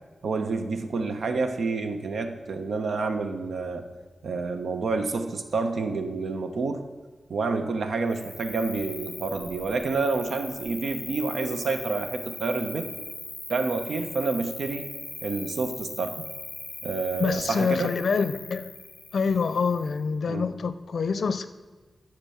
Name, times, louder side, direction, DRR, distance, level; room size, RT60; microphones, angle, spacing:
voice 1, 0.2-3.8 4.2-6.8 7.3-12.9 13.5-14.9 15.2-16.3 16.8-18.0 20.3-20.4, right 3 dB, 90° right, 7 dB, 0.9 m, -28 dB
Cricket, 8.1-20.0, left 2 dB, 25° left, 0.4 m, -40 dB
voice 2, 17.2-18.7 19.1-21.4, left 5 dB, 75° left, 11 dB, 0.6 m, -26 dB
10.5 x 6.6 x 5.7 m, 1.3 s
wide cardioid pair, 145°, 0 cm